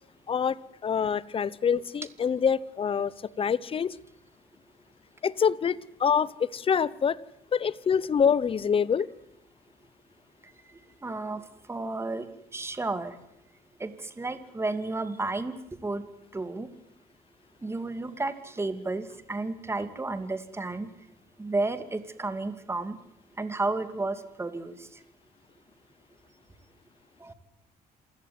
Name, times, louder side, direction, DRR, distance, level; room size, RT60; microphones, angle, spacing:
voice 1, 0.8-4.0 5.2-7.2 7.5-9.1, left 7 dB, 35° left, 21 dB, 1.0 m, -26 dB
voice 2, 11.0-12.3 12.5-13.2 13.8-15.5 15.8-16.1 16.3-16.7 17.6-20.9 21.4-23.0 23.4-25.0 27.2-27.3, right 2 dB, 15° right, 11 dB, 2.5 m, -32 dB
27.5 x 16.5 x 9.5 m, 0.78 s
cardioid pair, 115°, 15 cm